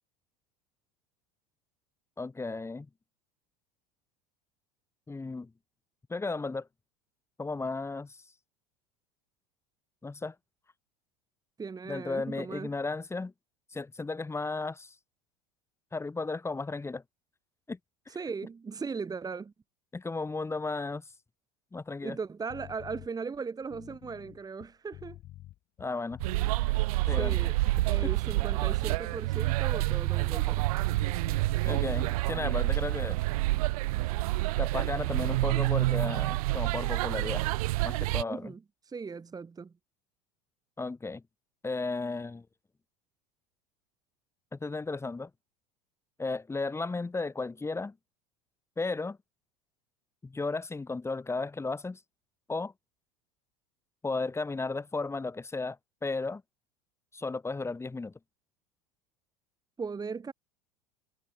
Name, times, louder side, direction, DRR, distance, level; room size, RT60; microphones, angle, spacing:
voice 1, 2.2-2.9 5.1-5.5 6.1-6.7 7.4-8.2 10.0-10.3 11.9-13.3 13.7-14.9 15.9-17.0 17.7-17.8 19.9-21.0 21.7-22.2 25.8-26.2 27.1-27.4 27.8-27.9 31.6-33.2 34.6-37.5 37.8-38.5 40.8-41.2 41.6-42.5 44.5-45.3 46.2-47.9 48.8-49.2 50.2-52.0 52.5-52.7 54.0-55.8 56.0-56.4 57.1-58.1, left 3 dB, 15° left, 2.1 m, -34 dB
voice 2, 11.6-12.7 18.1-19.5 22.0-25.2 27.1-27.6 27.9-30.6 38.3-38.6 38.9-39.7 59.8-60.3, right 5 dB, 20° right, 1.9 m, -38 dB
sound 1, 22.5-23.1 23.6-26.8 27.0-27.9 28.4-31.6 31.8-32.1, left 15 dB, 50° left, 7.2 m, -48 dB
sound 2, 26.2-38.2, right 20 dB, 70° right, 0.5 m, -28 dB
hypercardioid pair, 90°, 19 cm